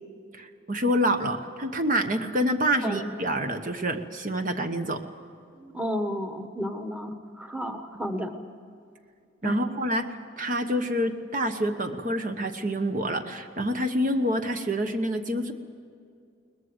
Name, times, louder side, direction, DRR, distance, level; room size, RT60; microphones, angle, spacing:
voice 1, 0.3-5.0 9.4-15.5, equal, 45° right, 6 dB, 1.1 m, -27 dB
voice 2, 5.6-8.3 9.4-9.6, equal, 10° right, 6 dB, 1.3 m, -32 dB
22.5 x 20.5 x 8.0 m, 2.3 s
head